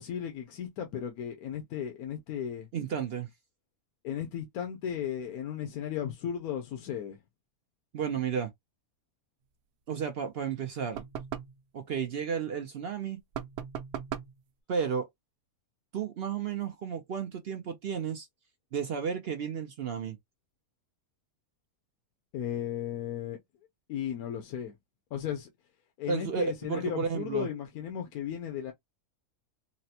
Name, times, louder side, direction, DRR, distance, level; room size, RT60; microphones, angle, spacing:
voice 1, 0.0-2.7 4.0-7.2 22.3-23.4 23.9-24.7 25.1-25.5 26.0-28.7, left 9 dB, 80° left, 1.2 m, -35 dB
voice 2, 2.7-3.3 7.9-8.5 9.9-11.0 11.7-13.2 14.7-15.1 15.9-18.3 18.7-20.2 26.1-27.5, right 6 dB, 65° right, 0.6 m, -32 dB
sound 1, 10.9-11.6 13.3-14.4, right 9 dB, 90° right, 1.1 m, -38 dB
4.1 x 2.1 x 2.7 m
omnidirectional pair, 1.6 m